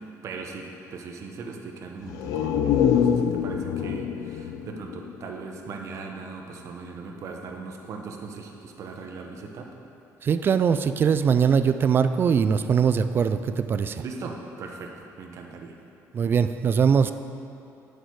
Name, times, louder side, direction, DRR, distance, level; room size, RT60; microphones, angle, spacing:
voice 1, 0.0-9.7 14.0-15.7, right 4 dB, 55° right, 2 dB, 1.0 m, -39 dB
sound 1, 2.0-5.8 6.1-6.2, left 8 dB, 85° left, 0.4 m, -25 dB
voice 2, 10.2-14.0 16.1-17.1, right 6 dB, 35° right, 11 dB, 0.3 m, -21 dB
9.4 x 6.5 x 4.7 m, 2.7 s
cardioid pair, 130°, 6 cm